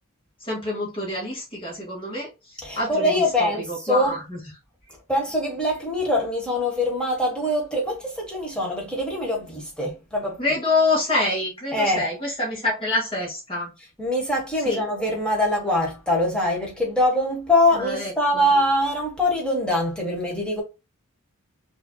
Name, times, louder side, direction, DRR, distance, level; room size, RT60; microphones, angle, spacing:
voice 1, 0.4-2.3 2.8-3.1 3.4-4.4 10.4-13.7 14.6-14.8 17.8-18.5, left 2 dB, 25° left, 2.0 m, -26 dB
voice 2, 2.6-4.2 5.1-10.4 11.7-12.0 14.0-20.6, left 1 dB, 5° left, 1.4 m, -23 dB
5.6 x 2.8 x 2.3 m
head